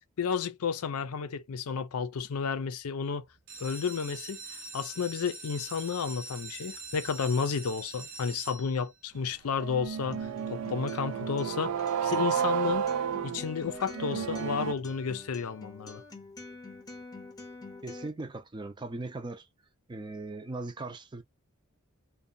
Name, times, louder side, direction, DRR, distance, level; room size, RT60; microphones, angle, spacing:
voice 1, 0.2-3.2 3.6-12.9 13.2-16.0, left 6 dB, 85° left, 0.5 m, -32 dB
sound 1, 3.4-9.1 9.7-10.2 10.6-10.7 10.9-11.0 11.5-11.6, right 3 dB, 65° right, 0.7 m, -44 dB
sound 2, 9.5-14.7, right 8 dB, 90° right, 0.3 m, -32 dB
Acoustic guitar, 10.1-18.1, left 3 dB, 20° left, 0.7 m, -46 dB
voice 2, 17.8-19.5 19.9-21.2, right 2 dB, 20° right, 0.5 m, -39 dB
2.7 x 2.2 x 2.5 m
head